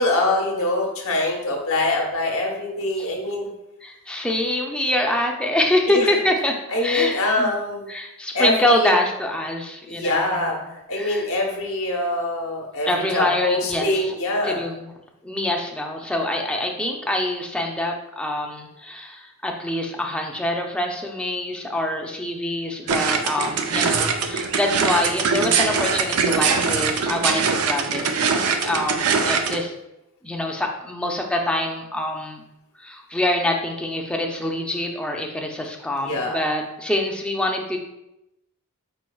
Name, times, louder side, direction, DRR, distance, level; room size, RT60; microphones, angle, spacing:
voice 1, 0.0-3.5 5.9-6.1 6.7-7.9 8.3-8.9 9.9-14.6 22.9-23.0 36.0-36.4, left 2 dB, 65° left, 0 dB, 1.1 m, -24 dB
voice 2, 3.8-7.5 7.9-10.5 10.9-11.3 12.9-14.1 14.4-14.9 15.2-28.0 28.6-29.7 30.2-32.4 32.8-37.8, left 1 dB, 5° left, 1 dB, 0.5 m, -25 dB
sound 1, 22.9-29.6, right 5 dB, 80° right, 0.5 m, -22 dB
5.2 x 4.4 x 2.3 m, 0.90 s
head